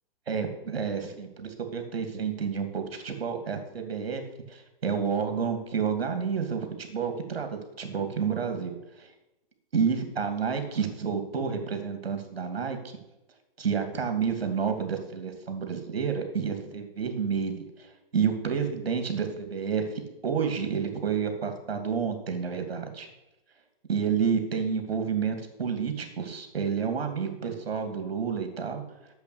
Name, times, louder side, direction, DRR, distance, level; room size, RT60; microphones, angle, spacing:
voice 1, 0.3-4.2 4.5-9.1 9.7-13.0 13.6-19.8 20.2-23.1 23.9-28.8, right 6 dB, 80° right, 7 dB, 2.7 m, -30 dB
8.2 x 7.6 x 8.7 m, 0.95 s
hypercardioid pair, 135°, 30 cm